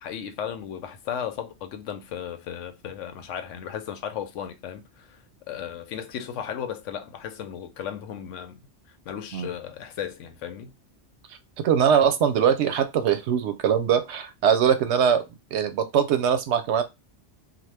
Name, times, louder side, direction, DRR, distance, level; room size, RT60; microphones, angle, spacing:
voice 1, 0.0-5.2 5.5-8.6 8.9-10.7, left 9 dB, 85° left, 0.9 m, -35 dB
voice 2, 11.6-15.2 15.5-16.8, right 8 dB, 70° right, 0.8 m, -22 dB
2.9 x 2.2 x 3.2 m
omnidirectional pair, 1.2 m